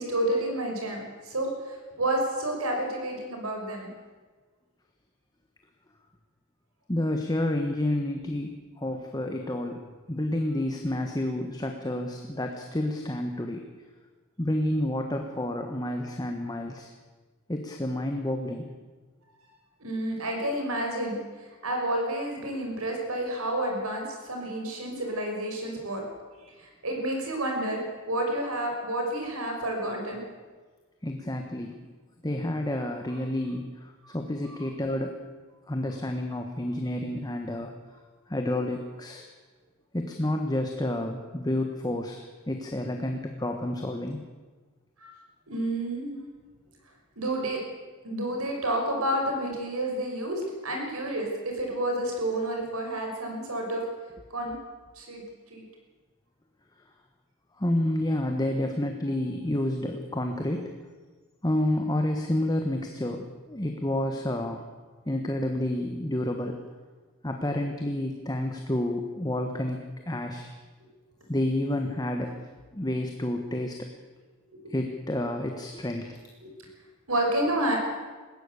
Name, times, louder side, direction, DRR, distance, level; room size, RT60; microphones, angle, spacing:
voice 1, 0.0-3.9 19.8-21.2 21.6-26.0 26.6-30.2 33.1-33.2 34.0-34.2 34.4-34.7 45.0-45.1 45.5-46.2 47.2-47.6 48.0-53.8 54.3-54.6 55.0-55.2 55.5-55.6 70.8-70.9 74.5-74.7 76.4-76.5 77.1-77.8, right 1 dB, 85° right, 2 dB, 6.1 m, -30 dB
voice 2, 6.9-9.8 10.1-13.6 14.4-16.9 17.5-18.6 31.0-31.7 32.2-35.2 35.7-37.7 38.3-39.3 39.9-44.2 57.6-60.7 61.4-64.7 65.1-66.6 67.2-70.5 71.3-72.4 72.7-73.9 74.7-76.2, left 1 dB, 20° left, 4 dB, 1.3 m, -29 dB
20.5 x 16.0 x 8.3 m, 1.4 s
head